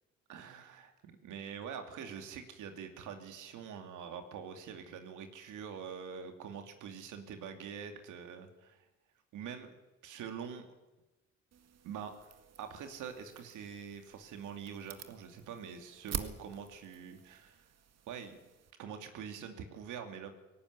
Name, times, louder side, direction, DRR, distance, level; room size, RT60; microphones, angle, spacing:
voice 1, 0.3-8.9 9.3-9.8 10.0-10.7 11.8-12.3 12.6-17.7 18.1-18.4 18.8-20.3, right 7 dB, 85° right, 6 dB, 2.8 m, -45 dB
sound 1, 11.5-18.7, right 7 dB, 60° right, 1.9 m, -48 dB
18.0 x 17.0 x 9.7 m, 1.0 s
cardioid pair, 90°, 30 cm